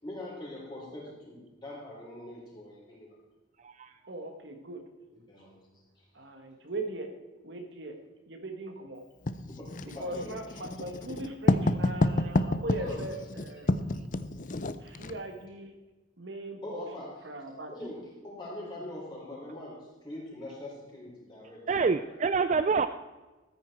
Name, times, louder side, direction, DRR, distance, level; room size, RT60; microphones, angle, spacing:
voice 1, 0.0-3.2 5.3-5.6 6.0-6.1 9.5-10.6 12.8-13.0 16.6-17.2 17.7-22.1 22.6-22.7, left 1 dB, 20° left, -5 dB, 4.7 m, -43 dB
voice 2, 4.1-4.8 6.1-7.1 7.4-8.0 8.3-9.0 10.0-13.7 14.8-15.7 16.2-16.8 17.2-17.7, right 2 dB, 60° right, 5 dB, 1.4 m, -39 dB
Writing, 9.3-15.2, left 2 dB, 40° left, 0.5 m, -29 dB
voice 3, 21.7-22.9, right 4 dB, 35° right, 11 dB, 0.3 m, -26 dB
13.5 x 9.6 x 4.5 m, 1.2 s
head